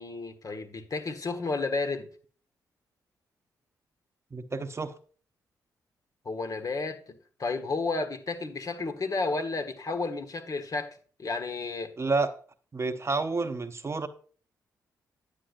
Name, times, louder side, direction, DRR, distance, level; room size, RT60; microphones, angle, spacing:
voice 1, 0.0-2.1 6.2-11.9, left 3 dB, 45° left, 1.3 m, -32 dB
voice 2, 4.3-4.9 12.0-12.3 12.7-14.1, right 3 dB, 35° right, 0.8 m, -29 dB
9.9 x 8.3 x 2.6 m
supercardioid pair, 45°, 8 cm